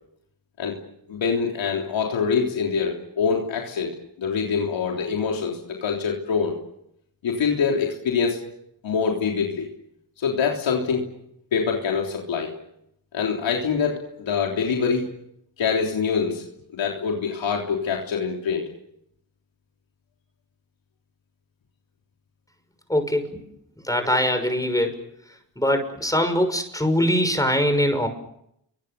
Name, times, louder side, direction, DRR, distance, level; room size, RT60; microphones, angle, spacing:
voice 1, 1.1-6.6 7.2-8.5 8.8-9.7 10.2-11.1 11.5-12.5 13.1-15.1 15.6-16.4 16.7-18.7, left 6 dB, 90° left, 0 dB, 3.5 m, -25 dB
voice 2, 22.9-23.4 23.8-25.0 25.6-28.1, equal, 10° left, 7 dB, 6.1 m, -22 dB
28.5 x 24.5 x 6.9 m, 0.77 s
cardioid pair, 65°, 44 cm